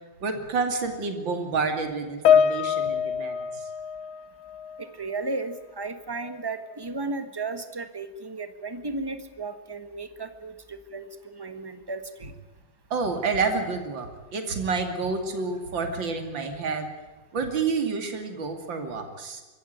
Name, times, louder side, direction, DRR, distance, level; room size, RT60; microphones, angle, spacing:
voice 1, 0.2-3.7 12.9-16.9 17.3-19.4, right 4 dB, 65° right, 6 dB, 3.3 m, -29 dB
Piano, 2.3-4.9 5.2-5.5 6.3-6.4, left 8 dB, 85° left, 1.7 m, -24 dB
voice 2, 4.8-12.3, right 3 dB, 15° right, 9 dB, 1.4 m, -34 dB
24.5 x 15.0 x 9.4 m, 1.2 s
omnidirectional pair, 2.2 m